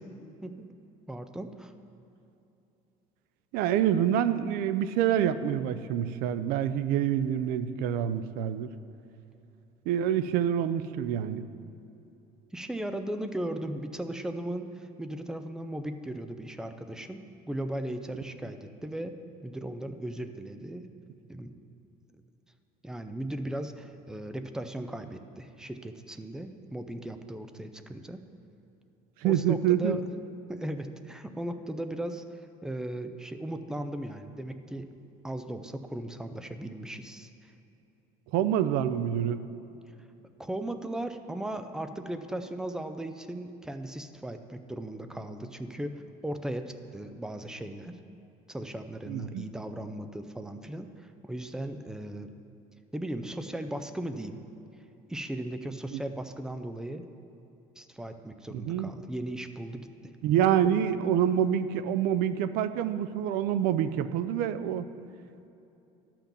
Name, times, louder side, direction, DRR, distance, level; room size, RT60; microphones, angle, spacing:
voice 1, 0.4-0.7 1.1-1.7 12.5-19.1 19.4-20.9 21.3-21.5 22.1-22.2 22.8-28.2 29.2-30.0 30.5-34.9 35.2-37.3 40.4-47.9 48.5-52.3 52.9-54.4 55.1-57.1 57.8-60.1, right 1 dB, 5° right, 8 dB, 0.3 m, -37 dB
voice 2, 3.5-8.7 9.9-11.4 29.2-30.0 38.3-39.4 49.1-49.5 55.9-56.0 58.5-58.9 60.2-64.9, right 10 dB, 70° right, 13 dB, 0.5 m, -27 dB
11.5 x 5.9 x 6.9 m, 2.8 s
cardioid pair, 175°, 16 cm